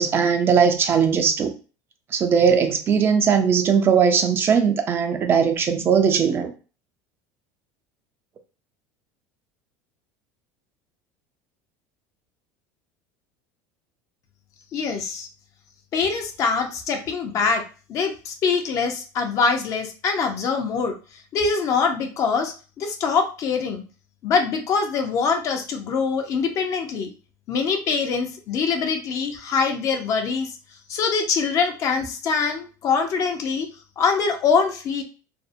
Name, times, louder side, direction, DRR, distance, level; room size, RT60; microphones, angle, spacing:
voice 1, 0.0-1.5 2.1-6.5, right 6 dB, 30° right, 0.3 m, -19 dB
voice 2, 14.7-15.3 15.9-17.6 17.9-21.0 21.3-23.8 24.2-27.1 27.5-30.5 30.9-33.7 34.0-35.0, left 5 dB, 45° left, 0.5 m, -23 dB
2.6 x 2.0 x 2.5 m
supercardioid pair, 125°, 7 cm